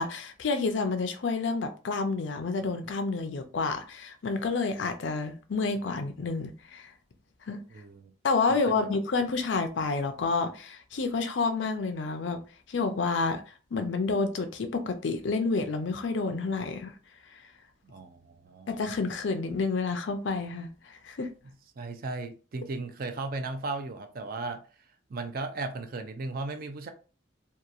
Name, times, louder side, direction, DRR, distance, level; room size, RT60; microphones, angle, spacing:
voice 1, 0.0-6.9 7.5-7.6 8.2-12.4 12.7-13.4 13.7-16.9 18.7-21.3, left 4 dB, 70° left, 0.5 m, -29 dB
voice 2, 7.7-8.1 8.5-8.9 17.8-18.7 21.4-24.6 25.1-26.9, right 3 dB, 50° right, 0.4 m, -36 dB
2.8 x 2.2 x 2.4 m
head